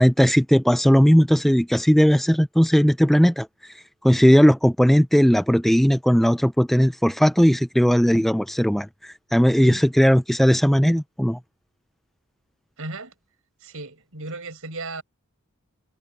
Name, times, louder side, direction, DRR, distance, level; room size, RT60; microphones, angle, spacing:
voice 1, 0.0-3.5 4.0-11.4, equal, ahead, 0.4 m, -17 dB
voice 2, 12.8-13.1 13.6-15.0, right 2 dB, 65° right, 7.9 m, -35 dB
head